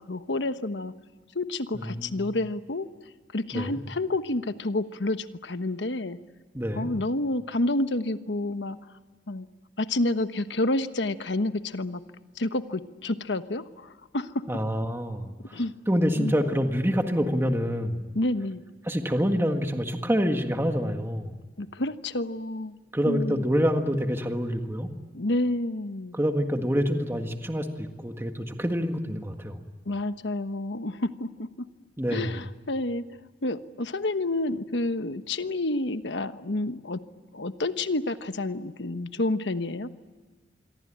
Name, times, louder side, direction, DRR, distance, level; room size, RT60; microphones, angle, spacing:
voice 1, 0.1-0.9 1.3-2.9 3.3-6.2 6.7-8.8 9.3-9.5 9.8-12.0 12.4-14.4 15.5-15.7 16.0-16.3 18.1-18.6 21.6-22.8 23.0-23.4 25.1-26.2 29.9-31.7 32.1-33.0 33.4-37.0 37.3-39.9, left 2 dB, 85° left, 10 dB, 1.2 m, -29 dB
voice 2, 1.7-2.2 3.5-3.8 6.5-6.9 14.5-15.6 15.9-18.1 18.9-21.3 22.9-24.9 26.1-29.6 32.0-32.3, equal, 15° right, 5 dB, 1.7 m, -27 dB
27.0 x 22.5 x 8.8 m, 1.3 s
head